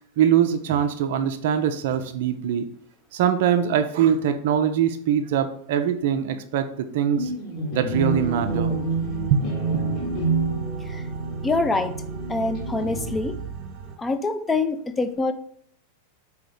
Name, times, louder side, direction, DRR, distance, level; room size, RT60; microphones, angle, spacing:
voice 1, 0.2-2.7 3.1-7.3 7.7-8.7 9.3-9.4 9.7-9.8, right 8 dB, 50° right, 8 dB, 0.4 m, -22 dB
sound 1, 7.2-13.5, right 3 dB, 35° left, 1.0 m, -28 dB
sound 2, 7.9-14.0, right 5 dB, 35° right, 0.8 m, -37 dB
voice 2, 11.4-11.9 12.3-13.4 14.0-15.3, left 3 dB, 15° left, 9 dB, 0.4 m, -25 dB
4.8 x 2.8 x 3.9 m, 0.64 s
figure-of-eight pair, 90°, 0 cm